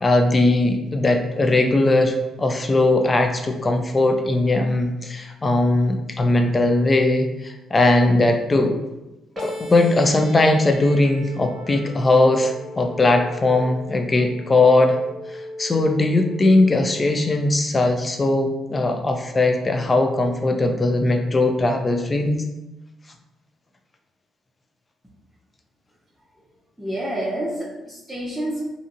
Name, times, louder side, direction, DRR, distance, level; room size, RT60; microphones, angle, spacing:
voice 1, 0.0-8.7 9.4-15.0 15.3-22.4, left 2 dB, 25° left, 5 dB, 0.4 m, -19 dB
sound 1, 9.4-17.4, left 1 dB, 35° right, 0.9 m, -37 dB
voice 2, 26.8-28.7, right 1 dB, 5° right, -8 dB, 0.7 m, -28 dB
2.8 x 2.6 x 2.5 m, 0.98 s
cardioid pair, 90°, 0 cm